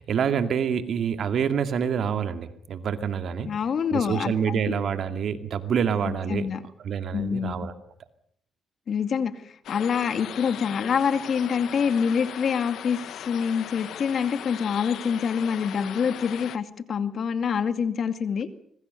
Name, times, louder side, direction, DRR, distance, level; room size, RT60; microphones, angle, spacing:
voice 1, 0.0-3.5 3.9-6.5 6.8-7.7, right 7 dB, 60° right, 9 dB, 2.4 m, -27 dB
voice 2, 3.4-4.7 6.0-6.6 7.1-7.7 8.9-18.5, left 6 dB, 55° left, 9 dB, 2.4 m, -26 dB
sound 1, 9.6-16.6, left 11 dB, 75° left, 1.1 m, -38 dB
25.5 x 23.0 x 6.8 m, 0.69 s
cardioid pair, 90°, 0 cm